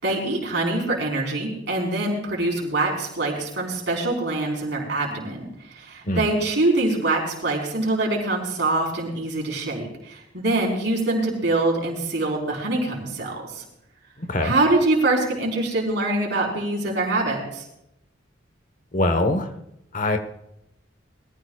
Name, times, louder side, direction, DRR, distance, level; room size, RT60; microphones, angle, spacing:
voice 1, 0.0-5.5 5.7-13.6 14.4-17.6, right 2 dB, 60° right, -1 dB, 4.8 m, -24 dB
voice 2, 14.2-14.5 18.9-19.5 19.9-20.2, left 2 dB, 40° left, 8 dB, 1.3 m, -23 dB
22.5 x 14.5 x 2.4 m, 0.81 s
head